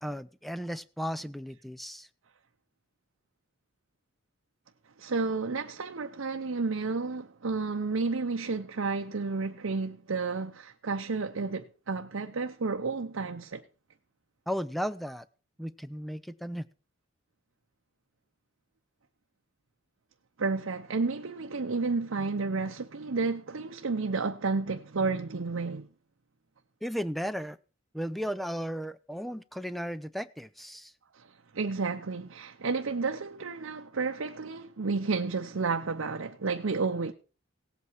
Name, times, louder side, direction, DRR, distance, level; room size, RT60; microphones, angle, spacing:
voice 1, 0.0-2.1 14.5-15.3 15.6-16.7 26.8-27.6 27.9-30.9, equal, ahead, 0.5 m, -35 dB
voice 2, 5.0-13.6 20.4-25.9 31.1-37.1, right 4 dB, 80° right, 0.7 m, -31 dB
17.0 x 8.3 x 4.6 m
head